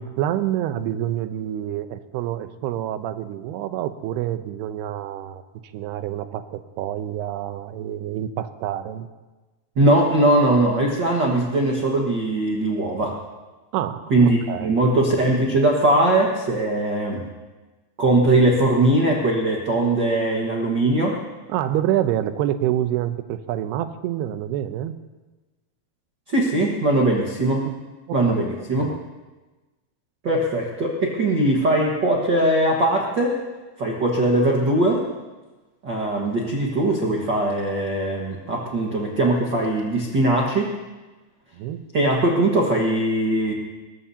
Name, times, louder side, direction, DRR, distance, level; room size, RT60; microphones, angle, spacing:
voice 1, 0.0-5.4 5.7-9.1 13.7-14.8 21.5-25.0 27.6-27.7 28.1-28.4 28.8-29.0 41.5-41.8, right 11 dB, 85° right, 10 dB, 2.8 m, -27 dB
voice 2, 9.8-13.2 14.1-17.2 18.0-21.2 26.3-27.7 28.1-28.9 30.2-33.4 33.8-35.0 35.8-40.7 41.9-43.5, right 1 dB, 60° right, -1 dB, 1.1 m, -20 dB
22.0 x 20.5 x 2.8 m, 1.2 s
omnidirectional pair, 4.6 m